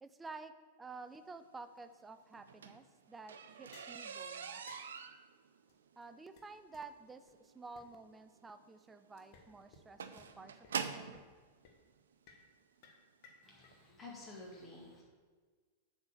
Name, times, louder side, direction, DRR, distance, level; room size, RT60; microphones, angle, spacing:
voice 1, 0.0-0.5 0.8-4.6 6.0-11.2, right 3 dB, 15° right, 10 dB, 0.5 m, -51 dB
sound 1, 2.3-11.2 12.1-12.2 12.8-13.0 13.3-13.4 13.7-13.8, right 6 dB, 70° right, 0.5 m, -45 dB
sound 2, 3.7-4.0 4.7-5.0 5.7-5.8 6.0-6.1 6.4-6.5 6.7-6.8 7.3-7.4 7.8-7.9 9.2-9.5 9.7-9.8 10.2-10.3 10.6-10.7 11.1-11.4 11.6-11.8 12.3-12.5 12.8-13.7, left 5 dB, 45° left, 1.1 m, -59 dB
voice 2, 13.4-15.0, left 2 dB, 15° left, -4 dB, 2.1 m, -51 dB
7.8 x 4.3 x 6.6 m, 1.5 s
figure-of-eight pair, 95°, 0 cm